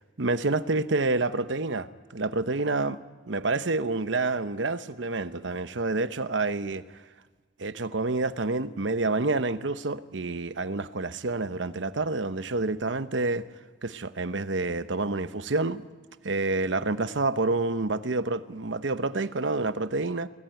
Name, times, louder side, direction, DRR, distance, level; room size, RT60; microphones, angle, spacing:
voice 1, 0.2-1.9 2.1-3.0 3.3-6.8 7.6-13.5 13.8-15.8 16.2-20.3, right 3 dB, 80° right, 0.9 m, -28 dB
24.0 x 19.0 x 9.1 m
head